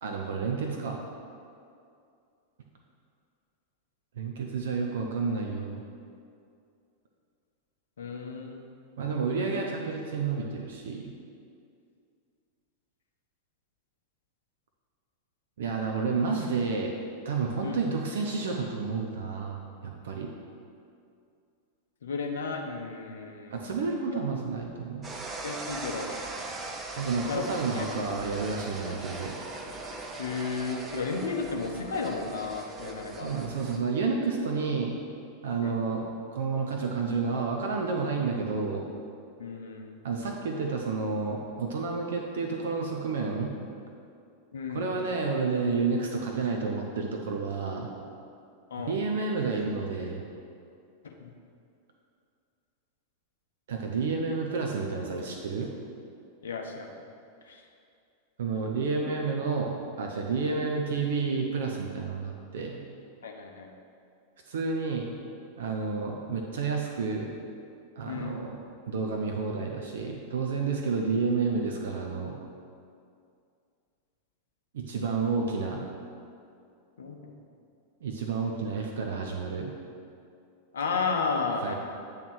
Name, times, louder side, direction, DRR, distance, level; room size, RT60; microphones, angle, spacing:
voice 1, 0.0-1.0 4.2-5.8 9.0-11.1 15.6-17.0 17.2-20.3 23.5-25.1 27.0-29.3 33.2-35.0 35.4-38.8 40.0-43.5 44.7-47.9 48.9-50.3 53.7-55.7 58.4-62.8 64.5-65.1 65.6-67.4 68.0-72.4 74.7-75.9 78.0-79.7 81.6-81.7, right 4 dB, 60° right, 1 dB, 0.6 m, -30 dB
voice 2, 8.0-8.7 17.6-17.8 22.0-23.8 24.1-24.2 25.4-26.1 27.3-27.4 27.7-27.9 28.3-28.4 30.2-33.3 35.6-35.7 39.4-40.0 44.5-44.9 48.7-49.0 51.0-51.3 56.4-56.9 57.4-57.6 63.2-63.7 68.0-68.4 77.0-77.3 80.7-81.7, left 4 dB, 65° left, 1 dB, 0.8 m, -33 dB
sound 1, 25.0-33.8, right 2 dB, 20° right, 0.7 m, -40 dB
8.7 x 3.2 x 6.2 m, 2.4 s
figure-of-eight pair, 90°, 0 cm